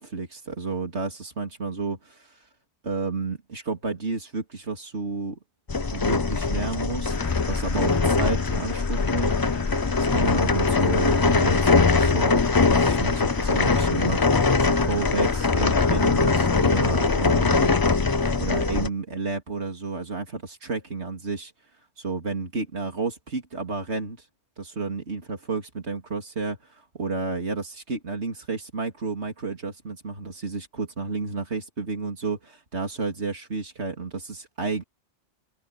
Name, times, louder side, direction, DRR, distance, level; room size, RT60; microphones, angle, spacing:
voice 1, 0.0-2.4 2.8-5.4 5.9-7.2 7.5-9.4 10.0-17.7 18.4-21.5 22.0-24.3 24.6-34.8, right 4 dB, 80° right, 3.4 m, -31 dB
sound 1, 5.7-18.9, left 4 dB, 30° left, 0.5 m, -22 dB
sound 2, 7.1-18.0, left 6 dB, 70° left, 1.6 m, -38 dB
open air
omnidirectional pair, 1.1 m